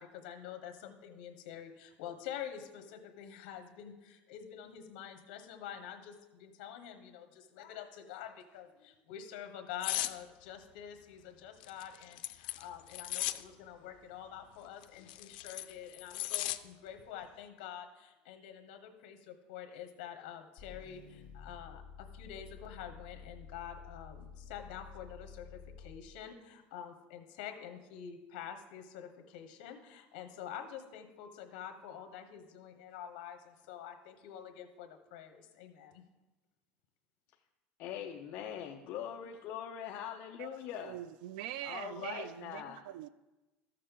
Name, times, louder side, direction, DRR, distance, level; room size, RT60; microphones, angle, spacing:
voice 1, 0.0-36.0, left 9 dB, 70° left, 1.2 m, -47 dB
sound 1, 9.8-10.2 11.6-13.4 14.8-16.6 17.0-17.2, left 16 dB, 90° left, 0.4 m, -36 dB
sound 2, 20.6-26.2, left 6 dB, 20° left, 2.0 m, -51 dB
voice 2, 37.8-41.0 41.6-42.8, left 9 dB, 40° left, 0.5 m, -42 dB
voice 3, 40.4-43.1, right 12 dB, 70° right, 0.3 m, -43 dB
13.5 x 6.6 x 3.7 m
cardioid pair, 175°, 5 cm